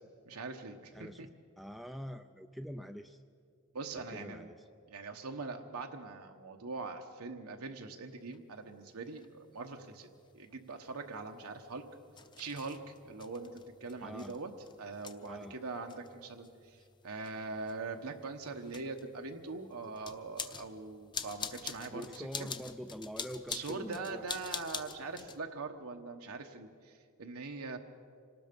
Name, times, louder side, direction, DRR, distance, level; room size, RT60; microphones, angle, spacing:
voice 1, 0.3-1.3 3.7-4.5 4.9-10.1 10.3-11.8 12.4-14.5 14.8-22.5 23.5-27.8, right 3 dB, 85° right, 3 dB, 1.1 m, -42 dB
voice 2, 0.9-1.3 1.6-3.2 4.1-4.6 14.0-14.3 15.3-15.5 21.9-24.2, equal, ahead, 7 dB, 0.4 m, -44 dB
sound 1, 8.3-8.4 9.1-9.3 10.3-25.4, left 5 dB, 20° left, 0.8 m, -46 dB
26.0 x 19.0 x 5.3 m, 2.3 s
head